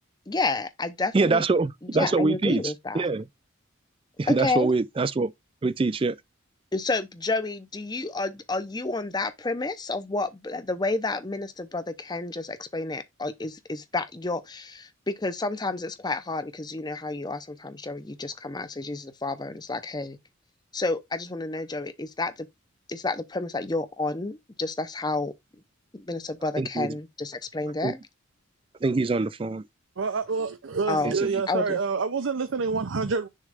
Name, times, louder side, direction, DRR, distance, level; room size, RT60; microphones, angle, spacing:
voice 1, 0.3-1.4 1.8-3.0 4.3-4.7 6.7-20.2 20.7-22.5 22.9-25.3 25.9-28.0 30.9-31.2 31.5-31.8, left 3 dB, 20° left, 0.7 m, -30 dB
voice 2, 1.1-3.2 4.2-5.3 5.6-6.2 26.6-26.9 27.8-27.9 28.8-29.6 31.0-31.3, right 3 dB, 25° right, 0.4 m, -24 dB
voice 3, 30.0-33.3, right 4 dB, 70° right, 0.6 m, -27 dB
6.6 x 3.1 x 5.0 m
head